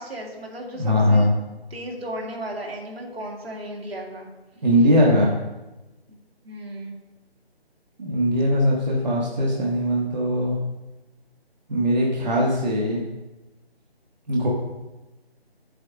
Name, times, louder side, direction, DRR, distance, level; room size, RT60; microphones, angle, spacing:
voice 1, 0.0-1.3 1.7-4.3 6.4-6.9, right 1 dB, 65° right, 0 dB, 2.2 m, -35 dB
voice 2, 0.8-1.3 4.6-5.3 8.0-10.6 11.7-13.0 14.3-14.5, equal, 40° right, -4 dB, 1.3 m, -20 dB
8.3 x 7.5 x 3.6 m, 1.1 s
figure-of-eight pair, 170°, 32 cm